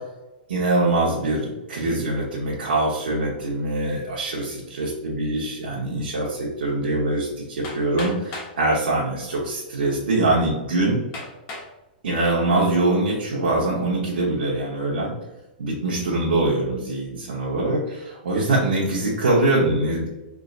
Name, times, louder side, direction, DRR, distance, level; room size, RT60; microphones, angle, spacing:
voice 1, 0.5-11.0 12.0-15.2 15.6-20.1, right 2 dB, 85° right, -5 dB, 1.1 m, -23 dB
Hammer, 7.6-8.6 9.5-9.6 10.2-10.3 11.1-11.7 12.3-12.8, left 3 dB, 35° left, 1.2 m, -36 dB
3.9 x 3.6 x 2.5 m, 1.0 s
hypercardioid pair, 145°, 5 cm